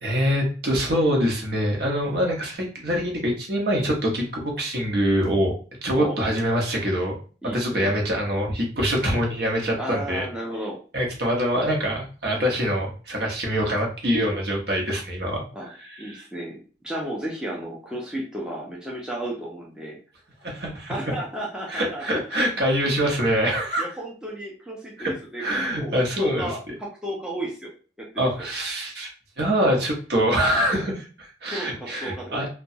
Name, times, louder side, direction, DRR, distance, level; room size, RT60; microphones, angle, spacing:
voice 1, 0.0-5.5 5.8-7.1 7.5-10.3 10.9-16.2 20.4-20.9 21.7-23.8 25.0-25.1 25.4-26.5 28.2-29.1 29.4-32.5, equal, 60° right, 0 dB, 0.8 m, -24 dB
voice 2, 7.4-8.0 9.8-10.8 15.5-15.7 16.0-20.0 20.9-22.1 23.8-27.7 28.0-28.5 29.6-29.8 30.7-30.9 31.5-32.4, right 1 dB, 5° right, -3 dB, 0.5 m, -33 dB
2.8 x 2.2 x 2.6 m, 0.38 s
head